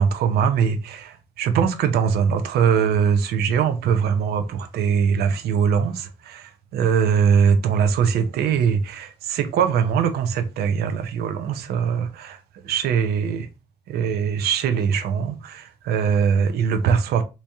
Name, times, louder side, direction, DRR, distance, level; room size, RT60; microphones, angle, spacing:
voice 1, 0.0-13.5 13.9-17.2, right 7 dB, 70° right, 0.6 m, -21 dB
3.1 x 2.8 x 3.4 m
cardioid pair, 110°, 17 cm